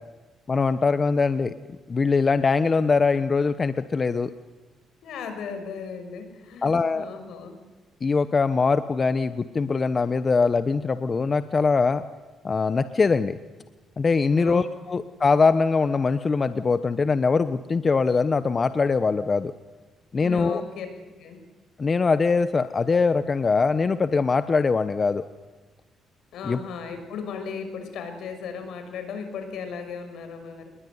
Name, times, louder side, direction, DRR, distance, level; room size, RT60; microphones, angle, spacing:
voice 1, 0.5-1.5 1.9-4.3 6.6-7.0 8.0-12.0 12.4-13.4 14.0-19.5 20.1-20.6 21.8-25.2 26.4-26.6, left 4 dB, 35° left, 11 dB, 0.9 m, -22 dB
voice 2, 5.0-7.6 14.2-15.0 20.2-20.9 21.2-21.4 26.3-30.7, left 6 dB, 80° left, 7 dB, 6.0 m, -36 dB
25.5 x 21.5 x 9.6 m, 1.2 s
cardioid pair, 90°, 0 cm